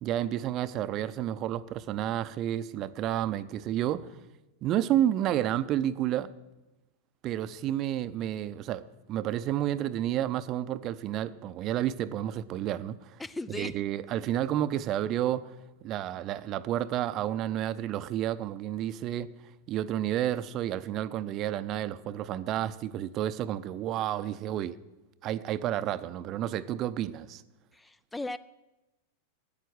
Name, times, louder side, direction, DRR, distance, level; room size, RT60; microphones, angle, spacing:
voice 1, 0.0-4.1 4.6-6.3 7.2-8.8 9.1-13.2 13.5-15.5 15.8-19.3 19.7-24.7 25.2-27.4, right 12 dB, 35° right, 0.6 m, -30 dB
voice 2, 13.2-13.7 27.7-28.4, left 2 dB, 10° left, 0.3 m, -37 dB
13.5 x 9.7 x 6.4 m
figure-of-eight pair, 90°, 0 cm